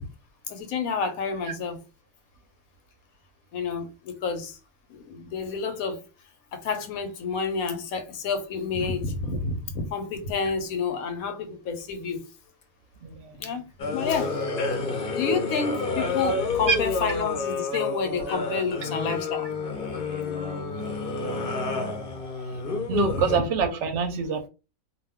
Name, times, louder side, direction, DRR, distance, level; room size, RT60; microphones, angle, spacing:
voice 1, 0.5-1.8 3.5-4.6 4.9-6.0 6.5-12.2 13.4-13.6 13.9-14.3 15.1-19.5 22.9-23.0 23.3-23.4, left 5 dB, 85° left, 1.1 m, -29 dB
voice 2, 13.0-13.3 16.7-16.8 20.6-22.0 22.9-24.5, right 6 dB, 65° right, 0.8 m, -27 dB
sound 1, 13.8-23.4, left 3 dB, 50° left, 0.7 m, -29 dB
2.5 x 2.3 x 3.4 m
omnidirectional pair, 1.5 m